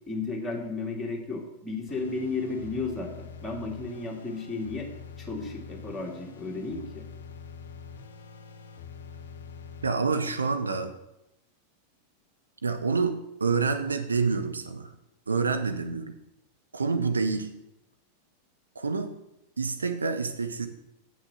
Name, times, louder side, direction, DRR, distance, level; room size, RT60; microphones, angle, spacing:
voice 1, 0.1-4.9 5.2-7.0, left 3 dB, 10° left, -2 dB, 2.1 m, -33 dB
sound 1, 1.9-9.9, left 6 dB, 60° left, 0.7 m, -45 dB
voice 2, 9.8-10.9 12.6-14.9 15.3-16.1 16.7-17.5 18.8-19.1 19.6-20.7, right 4 dB, 75° right, 6 dB, 0.8 m, -27 dB
7.6 x 6.3 x 6.2 m, 0.86 s
figure-of-eight pair, 90°, 0 cm